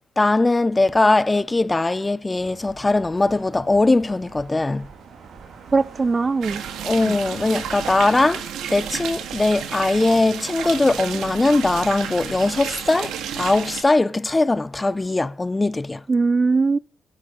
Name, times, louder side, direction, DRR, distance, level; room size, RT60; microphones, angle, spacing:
voice 1, 0.2-4.9 6.8-16.0, left 2 dB, 20° left, 0.5 m, -20 dB
sound 1, 2.4-8.3, right 5 dB, 65° right, 3.0 m, -43 dB
voice 2, 5.7-6.6 7.0-7.1 16.1-16.8, right 4 dB, 30° right, 0.5 m, -20 dB
sound 2, 6.4-13.8, right 8 dB, 80° right, 2.0 m, -32 dB
11.0 x 10.0 x 5.3 m
cardioid pair, 90°, 0 cm